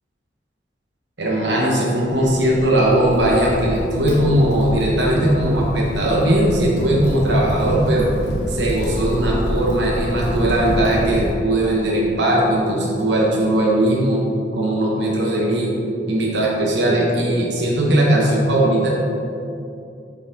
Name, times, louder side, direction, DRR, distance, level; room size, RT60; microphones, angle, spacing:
voice 1, 1.2-8.1 8.5-14.2 14.5-15.7 16.1-18.9, right 1 dB, 75° right, -3 dB, 1.2 m, -19 dB
Crackle, 2.1-11.3, equal, 75° left, 1.7 m, -27 dB
8.1 x 5.3 x 3.7 m, 2.6 s
head